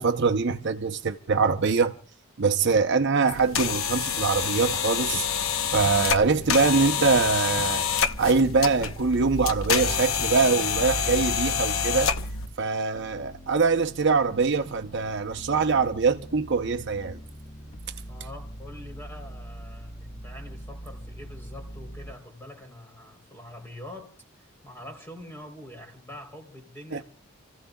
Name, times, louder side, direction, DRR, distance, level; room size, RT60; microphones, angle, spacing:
voice 1, 0.0-2.0 2.4-5.3 5.7-7.8 8.2-12.1 12.6-17.2 26.9-27.0, right 4 dB, 55° right, 0.7 m, -23 dB
sound 1, 3.3-12.5, left 7 dB, 70° left, 0.8 m, -27 dB
sound 2, 3.4-12.5 12.9-22.1, right 1 dB, 25° left, 1.6 m, -43 dB
voice 2, 18.1-24.1 24.6-27.0, left 1 dB, 10° left, 3.4 m, -44 dB
30.0 x 15.0 x 2.3 m
head